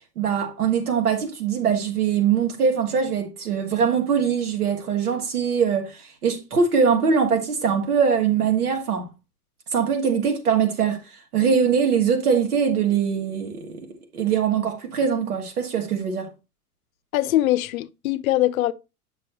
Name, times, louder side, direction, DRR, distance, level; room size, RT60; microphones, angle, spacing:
voice 1, 0.2-9.1 9.7-11.0 11.3-13.9 14.1-16.3, right 6 dB, 75° right, 2.2 m, -22 dB
voice 2, 17.1-18.7, left 15 dB, 65° left, 0.7 m, -22 dB
8.9 x 6.2 x 3.0 m
figure-of-eight pair, 90°, 45 cm